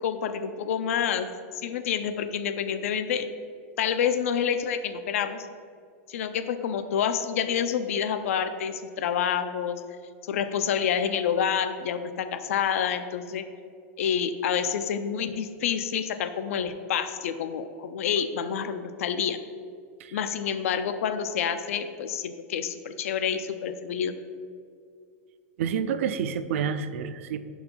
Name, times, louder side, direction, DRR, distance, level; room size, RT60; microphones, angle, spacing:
voice 1, 0.0-3.3 3.8-5.5 6.1-9.8 10.2-13.4 14.0-19.4 20.1-24.1, left 8 dB, 70° left, 10 dB, 0.5 m, -28 dB
voice 2, 25.6-27.4, right 7 dB, 60° right, 12 dB, 0.4 m, -28 dB
5.6 x 4.7 x 5.4 m, 2.2 s
supercardioid pair, 175°, 8 cm